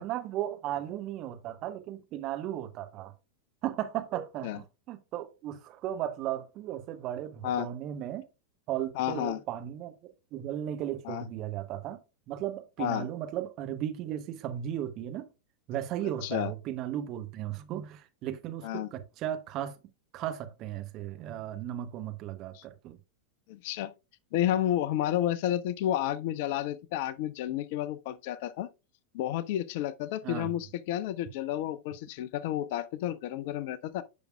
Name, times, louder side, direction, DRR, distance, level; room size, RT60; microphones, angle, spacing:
voice 1, 0.0-3.1 3.6-8.2 8.7-12.0 12.3-15.3 15.7-19.7 20.1-23.0 30.2-30.5, right 11 dB, 35° right, 0.8 m, -36 dB
voice 2, 9.0-9.4 11.0-11.2 12.8-13.1 16.2-16.5 18.6-18.9 22.5-22.6 23.5-23.9 24.3-28.7 29.1-34.0, left 12 dB, 50° left, 0.4 m, -31 dB
10.0 x 5.2 x 2.2 m
figure-of-eight pair, 90°, 0 cm